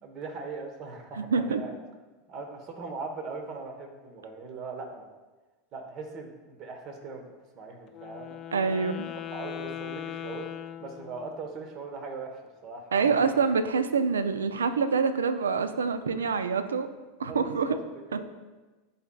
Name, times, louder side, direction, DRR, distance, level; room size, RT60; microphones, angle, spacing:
voice 1, 0.0-1.8 2.3-5.0 5.7-7.2 7.5-8.4 8.7-9.0 9.3-10.5 10.8-13.3 17.3-17.8 18.1-18.2, right 4 dB, 45° right, 4 dB, 1.1 m, -40 dB
voice 2, 1.2-1.6 8.5-9.1 12.9-16.9 17.2-17.8 18.1-18.2, right 5 dB, 80° right, 11 dB, 0.4 m, -26 dB
Wind instrument woodwind instrument, 7.9-11.5, left 11 dB, 40° left, 0.4 m, -39 dB
10.5 x 4.2 x 2.3 m, 1.2 s
figure-of-eight pair, 85°, 0 cm